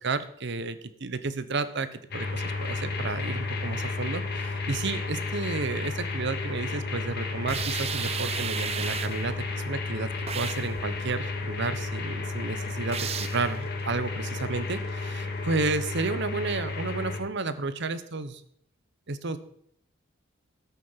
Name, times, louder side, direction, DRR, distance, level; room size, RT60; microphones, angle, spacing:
voice 1, 0.0-10.1 10.3-18.4 19.1-19.4, right 3 dB, 60° right, 13 dB, 1.0 m, -32 dB
sound 1, 2.1-17.2, left 3 dB, 50° left, 2.4 m, -32 dB
sound 2, 7.5-9.3 10.3-10.7 12.9-13.4, right 8 dB, 30° right, 0.5 m, -33 dB
13.0 x 8.4 x 5.8 m, 0.69 s
head